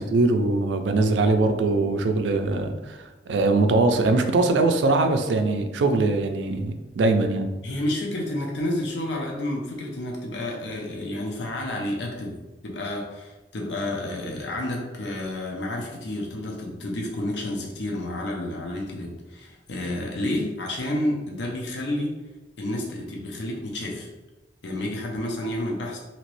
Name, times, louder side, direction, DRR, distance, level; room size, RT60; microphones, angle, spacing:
voice 1, 0.0-3.0 3.3-7.5, right 3 dB, 85° right, 7 dB, 0.4 m, -22 dB
voice 2, 7.6-22.2 22.6-24.1 24.6-26.0, left 1 dB, 70° left, 0 dB, 0.6 m, -30 dB
2.9 x 2.8 x 3.0 m, 1.1 s
head